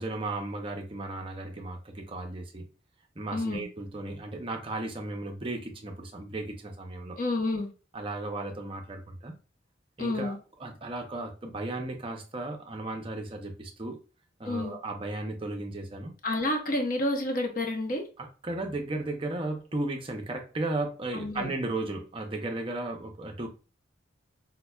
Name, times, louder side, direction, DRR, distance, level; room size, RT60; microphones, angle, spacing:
voice 1, 0.0-2.7 3.2-7.2 7.9-9.3 10.0-14.0 14.4-16.1 18.2-23.5, right 2 dB, 25° right, 0.6 m, -35 dB
voice 2, 3.3-3.6 7.2-7.7 10.0-10.4 14.4-14.7 16.2-18.0 21.1-21.5, left 1 dB, 45° left, 0.8 m, -29 dB
5.5 x 2.1 x 2.2 m
head